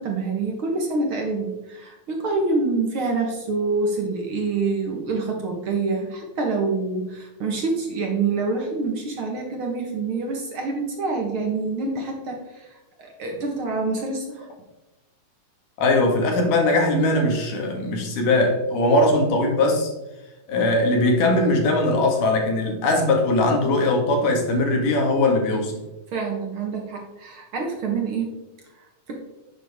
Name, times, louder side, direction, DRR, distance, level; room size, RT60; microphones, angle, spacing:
voice 1, 0.0-12.7 13.0-14.5 26.1-28.4 29.1-29.2, right 3 dB, 50° right, 1 dB, 1.8 m, -26 dB
voice 2, 15.8-19.9 20.5-25.8, left 2 dB, 85° left, 1 dB, 3.5 m, -20 dB
11.0 x 8.0 x 3.6 m, 1.0 s
omnidirectional pair, 3.6 m